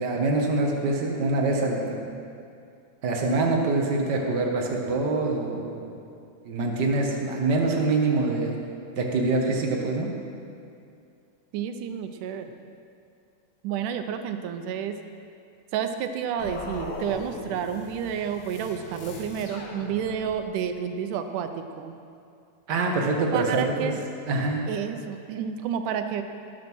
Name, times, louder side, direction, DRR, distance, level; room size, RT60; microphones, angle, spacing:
voice 1, 0.0-2.0 3.0-5.8 6.4-8.6 9.0-10.1 22.7-23.9 24.3-24.6, right 3 dB, 45° right, 0 dB, 1.5 m, -25 dB
voice 2, 11.5-12.5 13.6-15.0 15.7-21.9 23.3-24.0 24.7-26.2, right 8 dB, 85° right, 7 dB, 2.3 m, -30 dB
sound 1, 16.4-20.5, left 3 dB, 80° left, 3.1 m, -39 dB
18.0 x 7.4 x 6.2 m, 2.5 s
omnidirectional pair, 3.6 m